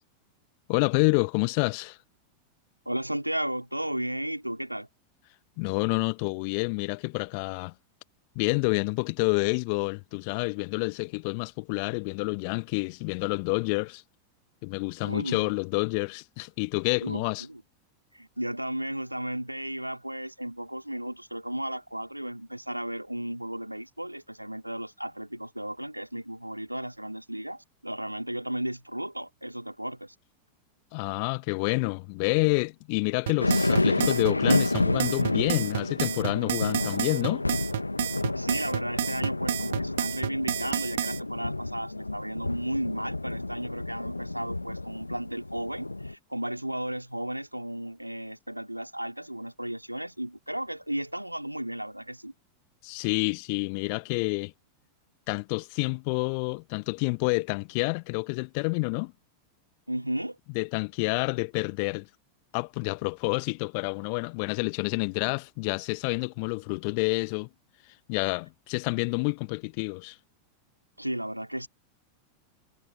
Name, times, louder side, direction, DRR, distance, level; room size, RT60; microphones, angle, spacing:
voice 1, 0.7-2.0 5.6-7.7 8.3-14.0 14.6-17.5 30.9-37.4 52.8-54.5 55.3-59.1 60.5-62.1 62.5-67.5 68.1-70.2, left 35 dB, 45° left, 1.6 m, -28 dB
voice 2, 2.9-4.9 15.0-15.5 17.0-17.6 18.1-30.1 38.4-52.3 59.9-60.4 71.0-71.7, right 1 dB, 90° right, 4.3 m, -34 dB
sound 1, 33.3-41.2, right 12 dB, 60° right, 1.1 m, -30 dB
sound 2, 33.4-46.1, left 2 dB, 85° left, 1.6 m, -30 dB
figure-of-eight pair, 90°, 0 cm